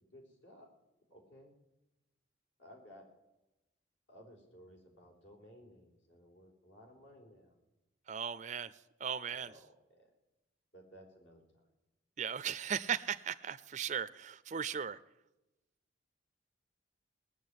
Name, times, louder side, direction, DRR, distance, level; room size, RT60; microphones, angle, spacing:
voice 1, 0.1-0.7 1.1-1.5 2.6-3.0 4.1-7.5 9.3-10.1 10.7-11.7, equal, 75° left, 1 dB, 4.1 m, -57 dB
voice 2, 8.1-8.7 9.0-9.5 12.2-15.0, right 7 dB, 40° right, 12 dB, 0.4 m, -37 dB
18.5 x 7.0 x 9.6 m, 0.99 s
head